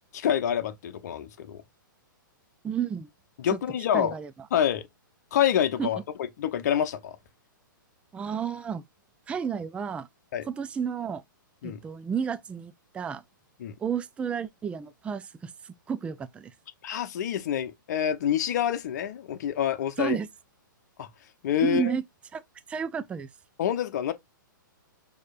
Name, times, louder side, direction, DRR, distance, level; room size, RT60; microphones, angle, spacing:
voice 1, 0.1-1.6 3.4-4.1 4.5-4.8 5.3-6.0 6.4-7.2 10.3-10.5 11.6-11.8 13.6-13.7 16.8-20.2 21.0-21.1 21.4-21.8 23.6-24.1, left 9 dB, 55° left, 0.8 m, -27 dB
voice 2, 2.6-3.1 3.5-3.6 3.9-4.3 5.8-5.9 8.1-8.8 9.3-10.1 10.5-11.2 11.6-13.2 13.8-16.5 20.0-20.3 21.6-22.0 22.3-22.4 22.7-23.3, right 7 dB, 10° right, 0.3 m, -31 dB
6.4 x 3.0 x 2.4 m
figure-of-eight pair, 115°, 11 cm